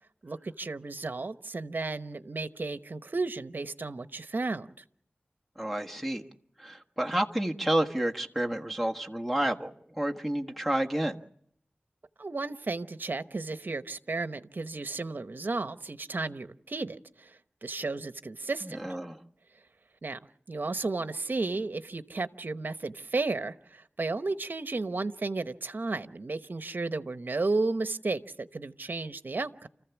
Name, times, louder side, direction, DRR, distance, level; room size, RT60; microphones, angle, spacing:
voice 1, 0.2-4.7 12.2-17.3 17.6-18.8 20.0-20.2 20.5-29.7, right 3 dB, 60° right, 11 dB, 0.9 m, -33 dB
voice 2, 5.6-6.2 6.6-11.2 18.6-19.2, right 1 dB, ahead, 5 dB, 1.5 m, -30 dB
29.5 x 14.5 x 7.2 m, 0.70 s
wide cardioid pair, 75°, 4 cm